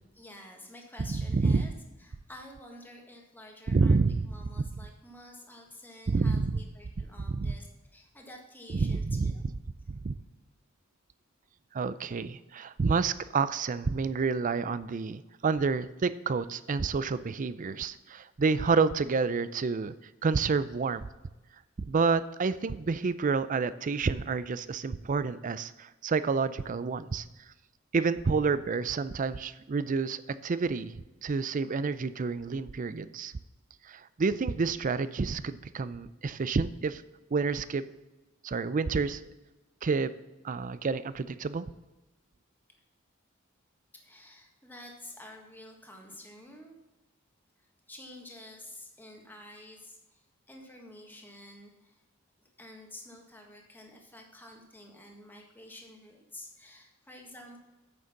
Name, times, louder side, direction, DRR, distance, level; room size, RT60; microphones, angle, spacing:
voice 1, 0.1-1.7 2.0-4.0 4.3-9.4 43.9-46.8 47.6-52.0 52.4-57.6, left 1 dB, 10° left, 1 dB, 1.6 m, -50 dB
voice 2, 1.0-1.7 3.7-4.3 6.1-6.6 7.3-7.5 8.7-9.3 9.9-10.2 11.7-19.9 20.2-21.0 21.9-27.2 27.9-33.3 33.8-37.0 37.3-37.8 38.4-39.2 39.8-40.1 40.4-41.6, right 4 dB, 40° right, 15 dB, 0.4 m, -29 dB
8.8 x 6.5 x 5.8 m, 1.1 s
head